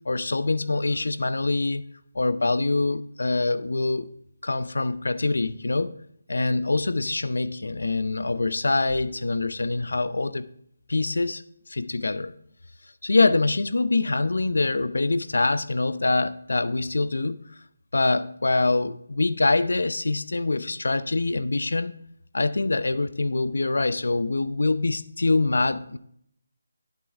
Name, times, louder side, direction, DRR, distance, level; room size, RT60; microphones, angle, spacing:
voice 1, 0.0-1.8 2.1-4.1 4.4-5.9 6.3-10.5 10.9-11.4 11.7-12.3 13.0-17.4 17.9-21.9 22.3-26.0, left 3 dB, 85° left, 14 dB, 0.6 m, -24 dB
10.0 x 8.0 x 3.6 m, 0.69 s
figure-of-eight pair, 170°, 0 cm